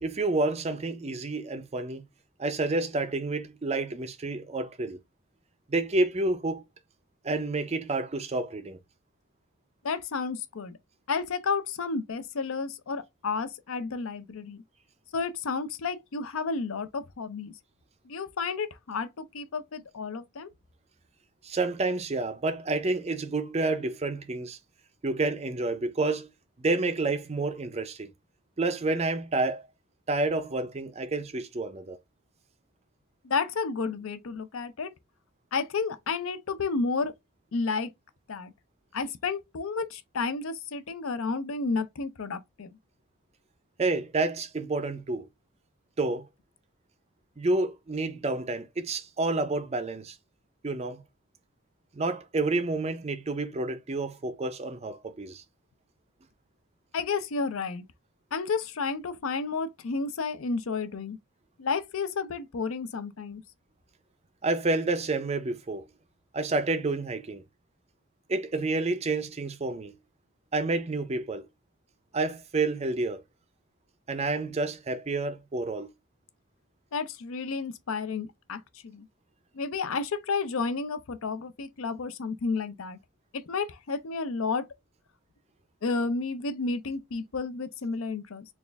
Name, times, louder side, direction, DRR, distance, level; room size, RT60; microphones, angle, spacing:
voice 1, 0.0-2.0 2.4-5.0 5.7-6.6 7.2-8.8 21.4-24.6 25.0-26.3 26.6-28.1 28.6-29.6 30.1-32.0 43.8-45.2 46.0-46.2 47.4-50.2 50.6-51.0 51.9-55.4 64.4-65.8 66.3-67.4 68.3-69.9 70.5-71.5 72.1-73.2 74.1-75.9, right 2 dB, 30° right, 0.4 m, -29 dB
voice 2, 9.8-10.8 11.1-14.6 15.1-17.5 18.0-20.5 33.2-34.9 35.5-37.1 37.5-37.9 38.3-38.5 38.9-42.7 56.9-57.8 58.3-61.2 61.6-63.4 76.9-79.1 79.5-83.0 83.3-84.7 85.8-88.5, left 4 dB, 70° left, 0.5 m, -31 dB
4.1 x 2.4 x 3.4 m
head